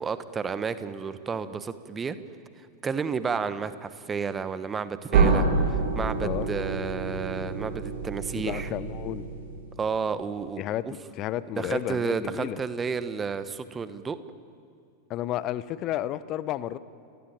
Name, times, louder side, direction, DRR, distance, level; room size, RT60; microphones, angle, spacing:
voice 1, 0.0-2.2 2.8-8.7 9.8-10.9 11.6-14.2, right 5 dB, 20° right, 13 dB, 1.2 m, -31 dB
sound 1, 5.1-9.9, right 4 dB, 55° right, 4.0 m, -27 dB
voice 2, 8.5-9.2 10.6-10.9 11.1-12.6 15.1-16.8, left 13 dB, 35° left, 17 dB, 0.8 m, -31 dB
29.5 x 17.5 x 9.3 m, 2.4 s
figure-of-eight pair, 90°, 0 cm